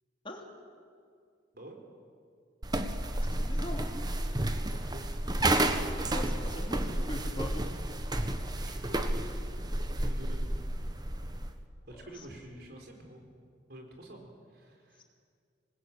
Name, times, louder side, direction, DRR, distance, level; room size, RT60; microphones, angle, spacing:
sound 1, 2.6-11.5, right 1 dB, 20° right, 1.3 m, -31 dB
voice 1, 3.3-3.9 6.1-7.6 11.9-12.0, left 1 dB, 25° left, 1 dB, 2.9 m, -41 dB
voice 2, 4.7-5.0 8.6-9.1 9.9-10.5 11.9-13.2 13.7-15.0, right 1 dB, 55° right, 3 dB, 4.2 m, -48 dB
27.0 x 19.5 x 8.8 m, 2.2 s
head